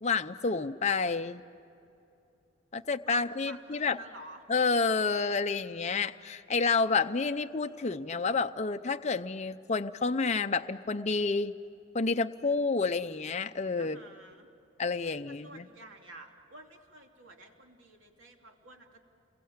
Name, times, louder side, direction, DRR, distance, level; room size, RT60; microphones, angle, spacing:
voice 1, 0.0-1.4 2.7-4.0 4.5-11.5 11.9-14.0 14.8-15.7, left 4 dB, 35° left, 8 dB, 0.6 m, -29 dB
voice 2, 2.8-4.4 13.8-14.5 15.3-19.0, right 2 dB, 70° right, 2 dB, 3.0 m, -51 dB
30.0 x 22.5 x 8.8 m, 2.7 s
head